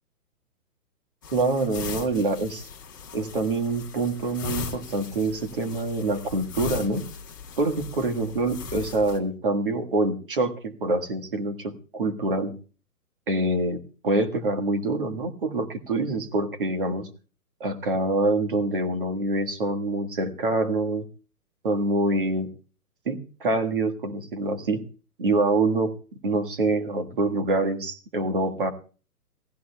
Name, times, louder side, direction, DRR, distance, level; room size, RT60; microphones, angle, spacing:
sound 1, 1.2-9.2, left 5 dB, 15° left, 1.1 m, -38 dB
voice 1, 1.3-2.7 3.1-7.1 7.6-12.5 13.3-17.1 17.6-21.1 21.6-22.5 23.0-24.8 25.2-25.9 26.2-28.7, right 2 dB, 35° right, 4 dB, 1.6 m, -25 dB
28.0 x 15.5 x 2.3 m, 0.38 s
hypercardioid pair, 180°, 47 cm